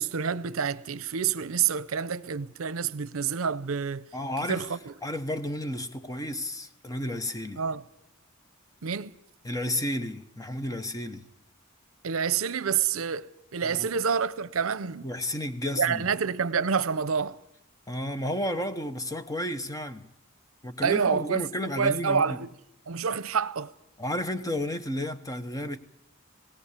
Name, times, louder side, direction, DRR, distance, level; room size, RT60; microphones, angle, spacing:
voice 1, 0.0-4.1 4.5-4.9 7.6-7.8 8.8-9.1 12.0-15.1 15.7-17.4 20.8-22.5 22.9-23.7, right 6 dB, 80° right, 0.7 m, -28 dB
voice 2, 4.1-4.7 5.0-7.6 9.4-11.3 13.6-13.9 15.0-16.1 17.9-20.1 20.6-22.4 24.0-25.8, left 1 dB, 15° left, 0.9 m, -32 dB
18.0 x 17.5 x 8.3 m
head